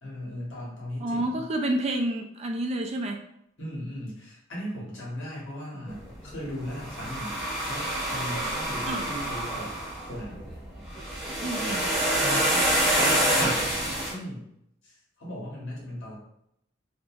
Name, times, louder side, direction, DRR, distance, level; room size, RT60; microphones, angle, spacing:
voice 1, 0.0-1.4 3.6-7.4 7.7-9.7 10.1-10.4 12.2-12.7 13.0-13.8 14.0-14.5 14.8-16.2, left 1 dB, 85° left, -6 dB, 1.2 m, -37 dB
voice 2, 1.0-3.2 5.7-6.0 8.8-9.0 11.4-11.8, right 1 dB, 35° right, 3 dB, 0.3 m, -29 dB
sound 1, 5.9-14.1, right 1 dB, ahead, 0.7 m, -27 dB
2.9 x 2.6 x 2.4 m, 0.76 s
head